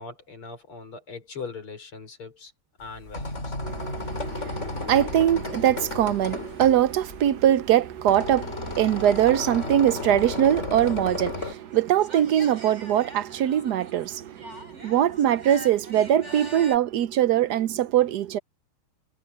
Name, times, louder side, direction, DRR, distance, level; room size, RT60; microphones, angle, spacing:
voice 1, 0.0-2.5 2.8-3.6, left 4 dB, 80° left, 6.2 m, -40 dB
sound 1, 2.8-11.5, left 3 dB, 30° left, 3.8 m, -34 dB
voice 2, 3.6-18.4, right 11 dB, 70° right, 1.0 m, -22 dB
sound 2, 8.2-16.8, right 1 dB, 30° right, 4.0 m, -45 dB
omnidirectional pair, 2.3 m